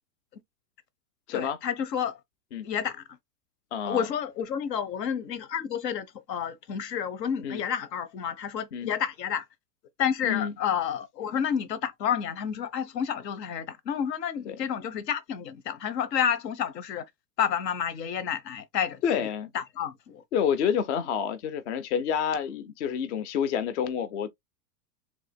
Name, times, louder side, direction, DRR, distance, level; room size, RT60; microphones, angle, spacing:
voice 1, 1.3-2.2 2.6-3.0 3.8-9.4 10.0-17.0 17.4-20.2, left 8 dB, 75° left, 1.2 m, -30 dB
voice 2, 3.7-4.1 7.4-7.6 8.7-8.9 10.2-10.5 14.5-14.6 19.0-19.5 20.3-24.3, left 8 dB, 45° left, 0.6 m, -28 dB
4.8 x 3.5 x 2.3 m
supercardioid pair, 170°, 50 cm